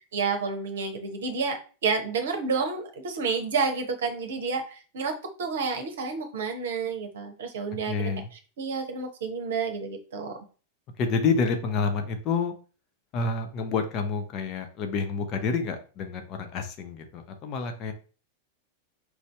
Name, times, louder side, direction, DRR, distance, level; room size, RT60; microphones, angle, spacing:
voice 1, 0.1-10.4, right 5 dB, 60° right, 5 dB, 0.8 m, -30 dB
voice 2, 7.9-8.3 11.0-12.5 13.1-17.9, left 4 dB, 35° left, 6 dB, 0.8 m, -28 dB
4.8 x 2.7 x 3.2 m, 0.37 s
figure-of-eight pair, 90°, 0 cm